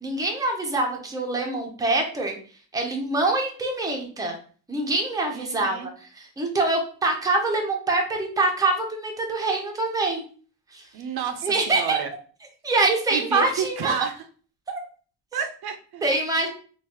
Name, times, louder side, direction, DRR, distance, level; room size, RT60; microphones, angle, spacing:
voice 1, 0.0-2.3 2.7-4.3 4.7-10.2 10.7-10.9 11.4-12.0 12.6-13.9 16.0-16.5, right 2 dB, 10° right, 1 dB, 0.6 m, -25 dB
voice 2, 5.3-5.9 10.9-12.1 13.1-14.1 15.3-16.0 16.4-16.5, right 7 dB, 70° right, 6 dB, 0.6 m, -30 dB
3.8 x 2.4 x 2.9 m, 0.42 s
cardioid pair, 145°, 40 cm